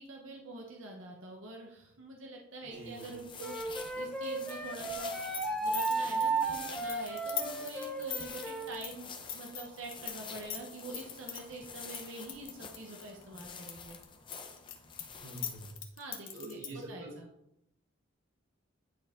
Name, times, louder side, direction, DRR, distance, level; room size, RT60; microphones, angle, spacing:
voice 1, 0.0-5.1 5.5-14.0 16.0-16.6 16.9-17.3, right 2 dB, 75° right, 0 dB, 1.1 m, -46 dB
voice 2, 2.6-3.1 15.2-15.7 16.3-17.1, right 1 dB, 60° right, -4 dB, 3.2 m, -45 dB
sound 1, 2.7-15.7, left 5 dB, 25° left, 0.8 m, -48 dB
Wind instrument woodwind instrument, 3.4-8.7, right 3 dB, 5° left, 1.0 m, -34 dB
sound 2, 5.0-10.1 10.4-11.4 11.9-13.7 14.0-16.8, left 10 dB, 70° left, 1.3 m, -40 dB
9.8 x 4.8 x 3.8 m, 0.81 s
head